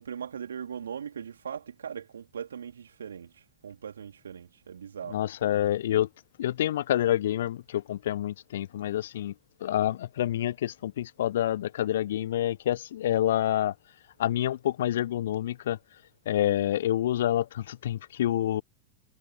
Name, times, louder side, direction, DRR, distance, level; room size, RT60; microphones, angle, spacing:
voice 1, 0.0-5.2, right 7 dB, 70° right, 3.6 m, -40 dB
voice 2, 5.1-6.1 6.4-9.3 9.6-13.7 14.2-15.8 16.3-18.6, left 12 dB, 60° left, 0.6 m, -27 dB
figure-of-eight pair, 90°, 0 cm